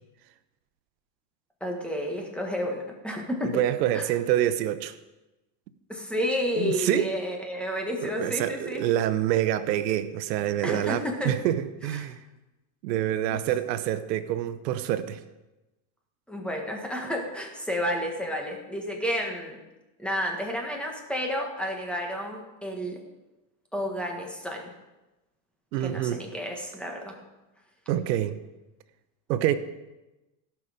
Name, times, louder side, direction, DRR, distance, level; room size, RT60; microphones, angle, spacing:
voice 1, 1.6-3.6 3.9-4.1 5.9-8.9 10.6-11.3 13.3-13.4 16.3-19.6 20.0-23.0 23.7-24.7 25.8-27.2, equal, ahead, 0 dB, 1.4 m, -31 dB
voice 2, 3.4-4.9 6.5-7.1 8.0-12.2 12.8-15.2 25.7-26.2 27.9-28.4 29.3-29.5, right 12 dB, 90° right, 12 dB, 0.9 m, -26 dB
17.0 x 5.9 x 5.0 m, 1.0 s
supercardioid pair, 150°, 49 cm